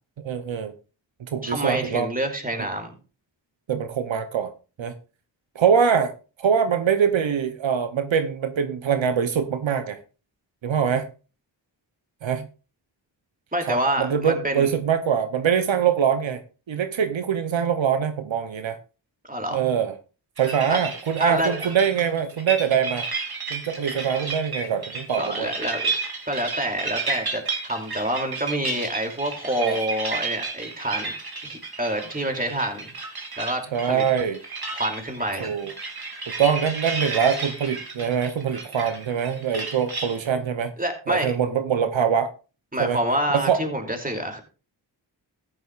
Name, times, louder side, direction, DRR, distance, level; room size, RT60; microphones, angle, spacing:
voice 1, 0.2-0.7 1.2-2.1 3.7-4.5 4.8-4.9 5.5-6.1 6.4-10.0 10.6-11.1 12.2-12.5 13.7-16.4 16.7-18.8 19.5-19.9 20.4-23.1 23.5-25.5 29.6-29.8 33.7-34.4 35.4-35.7 36.4-40.7 41.1-42.3 42.8-43.0 43.3-43.6, right 7 dB, 80° right, 0.8 m, -23 dB
voice 2, 1.4-2.9 13.5-14.7 19.2-19.6 20.7-20.8 21.2-21.7 25.2-25.9 26.2-31.1 31.4-32.9 33.4-34.0 34.7-35.5 40.8-41.4 42.7-44.4, right 1 dB, 20° right, 2.8 m, -27 dB
sound 1, 20.4-40.3, right 3 dB, 55° right, 2.4 m, -32 dB
14.0 x 10.0 x 2.4 m
cardioid pair, 45°, 45 cm